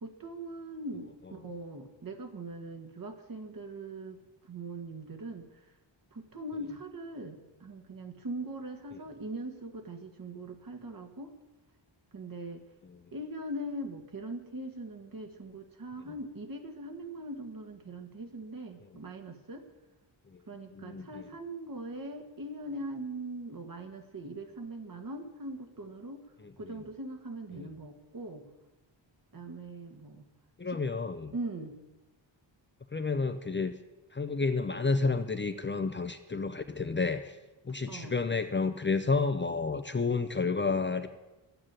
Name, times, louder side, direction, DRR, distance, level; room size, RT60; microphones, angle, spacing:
voice 1, 0.0-5.7 6.1-11.3 12.1-12.6 13.1-19.6 20.5-26.3 26.6-28.4 29.3-30.3 30.7-30.8 31.3-31.8 37.9-38.2, right 1 dB, 45° right, 5 dB, 1.9 m, -41 dB
voice 2, 20.7-21.2 27.5-27.7 30.6-31.3 32.9-33.7 34.1-37.4 37.6-41.1, left 4 dB, 25° left, 8 dB, 0.7 m, -30 dB
12.0 x 9.0 x 9.1 m, 1.0 s
wide cardioid pair, 110°, 47 cm